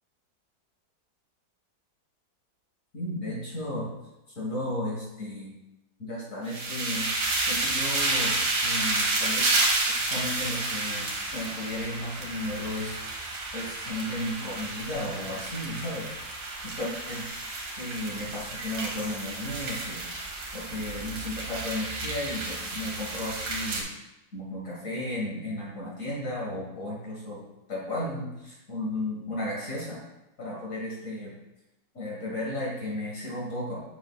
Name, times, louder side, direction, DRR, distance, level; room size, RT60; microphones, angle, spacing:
voice 1, 2.9-3.9 4.4-5.5 6.0-7.1 7.4-8.4 8.6-13.0 13.5-16.1 16.6-17.3 17.8-23.9 24.3-27.4 27.7-30.0 30.4-31.4 31.9-33.8, left 1 dB, 50° left, -5 dB, 1.8 m, -34 dB
sound 1, 6.5-23.8, right 2 dB, 90° right, 1.9 m, -31 dB
7.0 x 6.0 x 2.3 m, 0.94 s
omnidirectional pair, 2.0 m